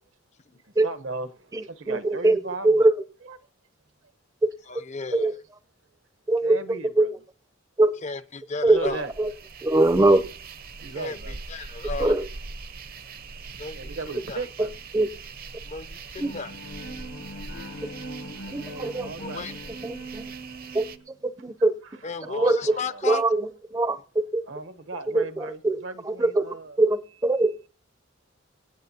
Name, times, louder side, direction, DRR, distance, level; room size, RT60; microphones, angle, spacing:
voice 1, 0.8-2.9 6.4-7.1 8.6-9.1 10.8-11.4 13.7-14.7 18.4-19.5 22.2-23.0 24.5-26.8, right 3 dB, 75° right, 1.1 m, -36 dB
voice 2, 1.5-2.9 4.4-4.5 5.1-5.3 6.3-6.6 7.0-7.2 7.8-7.9 8.6-8.8 9.2-9.3 9.6-10.2 12.0-12.3 14.6-14.7 14.9-15.1 16.2-16.3 17.8-17.9 18.5-19.1 19.8-20.3 20.7-21.7 22.2-22.8 23.0-24.4 25.1-25.8 26.0-27.5, right 2 dB, 15° right, 0.6 m, -22 dB
voice 3, 4.7-5.3 8.0-9.0 10.9-12.2 13.6-13.9 14.3-14.4 15.7-16.5 19.2-19.5 22.0-23.2, left 4 dB, 35° left, 0.5 m, -34 dB
sound 1, 8.7-21.0, right 4 dB, 50° right, 0.8 m, -41 dB
Bowed string instrument, 16.2-21.1, right 1 dB, 70° left, 1.1 m, -40 dB
24.0 x 8.9 x 2.8 m
head